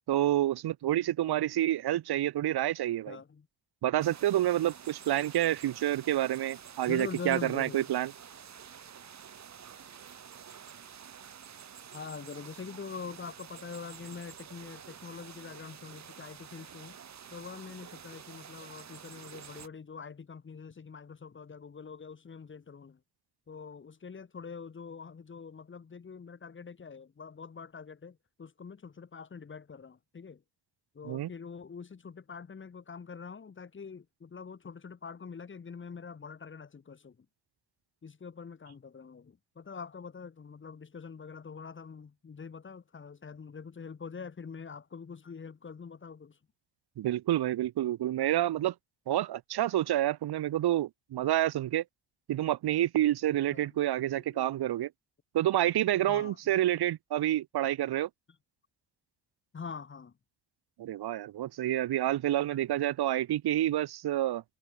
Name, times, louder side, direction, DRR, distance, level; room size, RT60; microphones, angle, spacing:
voice 1, 0.1-3.2 3.8-8.1 31.1-31.3 47.0-48.7 49.1-51.8 52.3-54.9 55.3-58.1 60.8-64.4, right 13 dB, 75° right, 1.8 m, -28 dB
voice 2, 3.1-3.5 6.9-7.9 11.9-17.0 17.3-23.0 23.5-30.4 30.9-37.2 38.0-46.4 53.5-53.7 54.1-54.5 56.1-56.4 59.5-60.1, left 5 dB, 30° left, 7.3 m, -44 dB
sound 1, 4.0-19.7, right 8 dB, 45° right, 7.4 m, -49 dB
wide cardioid pair, 175°, 38 cm